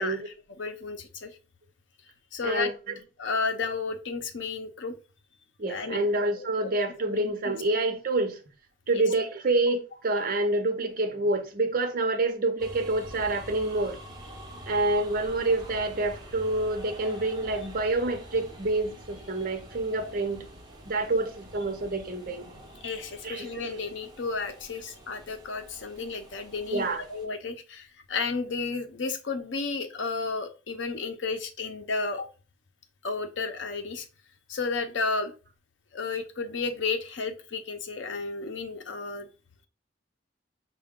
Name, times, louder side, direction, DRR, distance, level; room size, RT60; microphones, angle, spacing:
voice 1, 0.0-1.4 2.3-2.7 3.2-5.0 5.7-6.1 6.4-6.7 7.1-7.3 8.9-9.0 22.8-32.3 33.0-34.1 34.5-35.3 35.9-39.3, left 4 dB, 85° left, 0.7 m, -32 dB
voice 2, 2.4-3.0 5.6-8.4 8.9-14.0 14.7-20.5 20.9-22.5 23.2-23.7 26.7-27.0, right 2 dB, 50° right, 0.7 m, -27 dB
sound 1, 12.6-27.3, right 1 dB, 20° right, 0.9 m, -46 dB
5.5 x 2.3 x 3.6 m
head